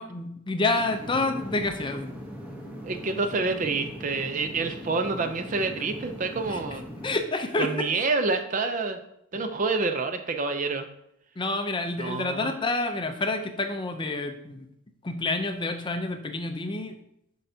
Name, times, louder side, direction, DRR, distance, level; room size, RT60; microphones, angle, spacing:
voice 1, 0.0-2.1 6.5-6.6 7.0-8.0 11.4-14.7 15.0-17.0, left 2 dB, 20° left, 6 dB, 0.5 m, -28 dB
sound 1, 0.7-7.2, equal, 5° right, 0.8 m, -40 dB
voice 2, 2.8-6.8 7.6-9.0 9.3-10.9 12.0-12.5, right 3 dB, 35° right, 7 dB, 0.5 m, -28 dB
7.5 x 5.6 x 2.7 m, 0.77 s
head